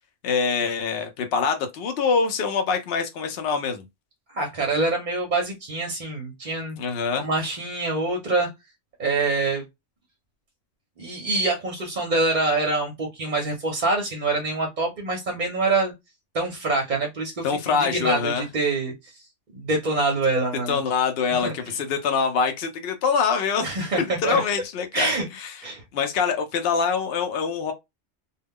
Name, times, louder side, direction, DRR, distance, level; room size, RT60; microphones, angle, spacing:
voice 1, 0.2-3.8 6.8-7.3 17.4-18.5 20.7-25.6 25.9-27.7, left 5 dB, 65° left, 0.7 m, -25 dB
voice 2, 4.3-6.8 7.2-8.5 9.0-9.6 11.0-15.9 16.3-18.9 19.5-20.8 21.3-21.5 23.6-24.4 24.9-25.2 25.6-25.8, right 3 dB, 45° right, 0.7 m, -25 dB
2.2 x 2.2 x 3.4 m
omnidirectional pair, 1.2 m